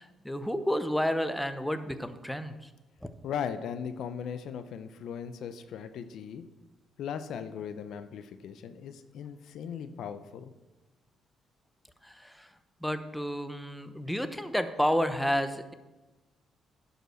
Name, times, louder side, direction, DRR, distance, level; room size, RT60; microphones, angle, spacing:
voice 1, 0.0-2.7 3.0-3.1 12.0-12.5 12.8-15.7, equal, 5° left, 10 dB, 0.7 m, -31 dB
voice 2, 3.2-6.5 7.0-10.5, left 7 dB, 75° left, 11 dB, 0.6 m, -38 dB
11.0 x 5.3 x 6.4 m, 1.1 s
cardioid pair, 90°, 0 cm